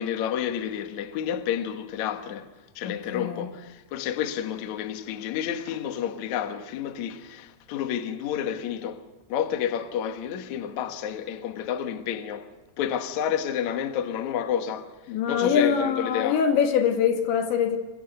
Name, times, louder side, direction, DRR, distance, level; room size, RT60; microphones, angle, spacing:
voice 1, 0.0-2.5 2.8-9.0 9.3-12.5 12.8-16.4, left 9 dB, 60° left, 2.0 m, -30 dB
voice 2, 2.8-3.5 15.1-17.8, left 7 dB, 80° left, 4.4 m, -24 dB
29.0 x 23.0 x 7.9 m
omnidirectional pair, 5.1 m